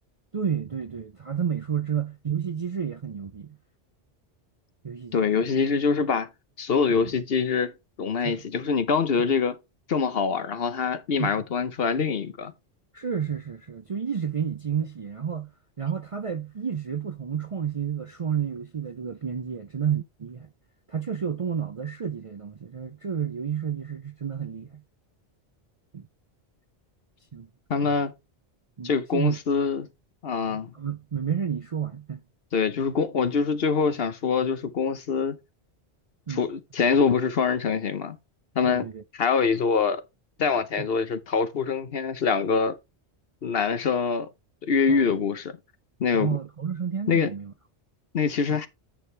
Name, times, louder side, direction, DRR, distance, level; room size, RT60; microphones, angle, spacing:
voice 1, 0.3-3.6 4.8-5.4 6.9-7.1 8.2-8.4 11.2-11.4 12.9-15.5 15.8-20.5 20.9-24.8 25.9-26.1 27.3-27.5 27.8-27.9 28.8-29.4 30.5-32.2 36.3-36.5 38.6-39.0 40.8-40.9 44.9-45.2 46.1-47.5 48.5-48.6, right 7 dB, 45° right, 0.4 m, -31 dB
voice 2, 5.1-6.3 6.6-7.7 8.0-9.6 9.9-12.5 27.7-28.1 28.8-29.9 30.2-30.7 32.5-35.4 36.3-38.2 38.5-38.8 39.2-40.0 40.4-42.8 43.4-44.3 44.6-45.6 46.0-46.4 47.1-47.3 48.1-48.7, left 5 dB, 60° left, 1.1 m, -24 dB
9.2 x 6.4 x 3.3 m
omnidirectional pair, 1.2 m